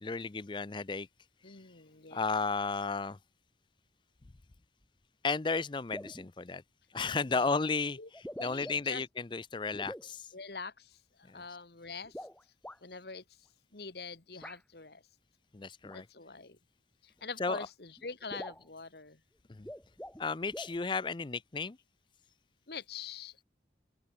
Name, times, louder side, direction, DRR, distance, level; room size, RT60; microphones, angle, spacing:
voice 1, 0.0-1.1 2.1-3.2 5.2-6.6 6.9-10.3 11.3-11.4 15.5-16.1 17.4-17.7 19.5-19.7 20.2-21.8, left 4 dB, 25° left, 0.5 m, -34 dB
voice 2, 1.4-2.2 7.3-7.6 8.0-8.1 8.4-9.0 10.3-12.3 12.8-13.2 13.7-15.0 15.9-16.6 17.0-19.2 22.7-23.4, left 4 dB, 65° left, 1.6 m, -44 dB
sound 1, 5.5-5.6 5.9-6.3 7.3-7.5 8.1-9.0 9.7-10.1 12.0-12.8 14.4-14.6 15.8-16.0 17.2-17.3 17.6-17.7 18.0-18.1 18.3-18.7 19.5-20.2 20.5-20.8, equal, 5° left, 2.4 m, -45 dB
open air
head